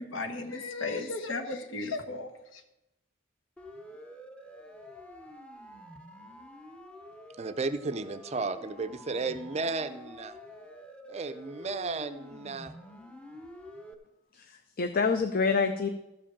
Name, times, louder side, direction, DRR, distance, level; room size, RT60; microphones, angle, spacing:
voice 1, 0.0-2.6, left 3 dB, 70° left, 5 dB, 1.3 m, -35 dB
Siren, 3.6-13.9, equal, 5° left, 0.7 m, -48 dB
voice 2, 7.4-10.4 11.1-12.7, right 3 dB, 30° right, 11 dB, 0.5 m, -34 dB
voice 3, 14.3-15.9, left 4 dB, 45° left, 7 dB, 0.6 m, -27 dB
13.5 x 5.1 x 7.2 m, 0.93 s
head